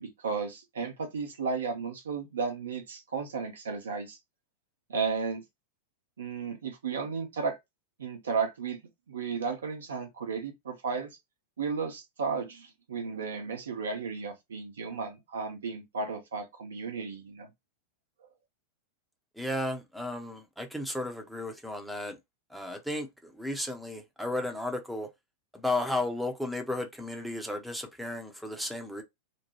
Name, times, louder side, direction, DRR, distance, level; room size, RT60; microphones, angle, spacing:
voice 1, 0.0-4.2 4.9-5.4 6.2-7.6 8.0-8.8 9.1-11.1 11.6-17.5, right 5 dB, 65° right, 0.7 m, -34 dB
voice 2, 19.4-22.2 22.5-25.1 25.5-29.0, left 1 dB, ahead, 0.7 m, -34 dB
3.0 x 2.1 x 2.9 m
figure-of-eight pair, 90°, 0 cm